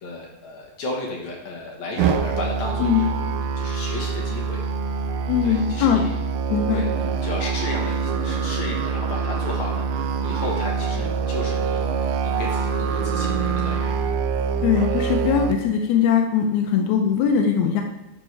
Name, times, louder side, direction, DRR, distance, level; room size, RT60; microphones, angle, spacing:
voice 1, 0.0-3.1 3.6-4.6 5.4-6.1 6.7-13.9, left 2 dB, 60° left, -1 dB, 2.3 m, -34 dB
Musical instrument, 2.0-15.5, right 5 dB, 80° right, 2.0 m, -25 dB
voice 2, 5.3-6.0 6.5-6.8 14.6-17.8, left 7 dB, 85° left, 3 dB, 1.7 m, -20 dB
11.5 x 6.4 x 3.3 m, 0.97 s
omnidirectional pair, 4.2 m